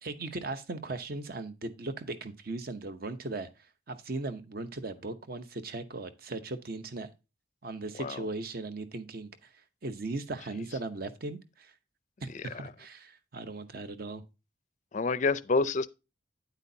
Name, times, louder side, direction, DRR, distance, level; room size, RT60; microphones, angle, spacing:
voice 1, 0.0-7.1 7.6-11.7 12.2-14.2, right 2 dB, 50° right, 0.8 m, -38 dB
voice 2, 12.3-12.7 14.9-15.9, left 3 dB, 40° left, 0.4 m, -28 dB
9.3 x 8.2 x 2.7 m
head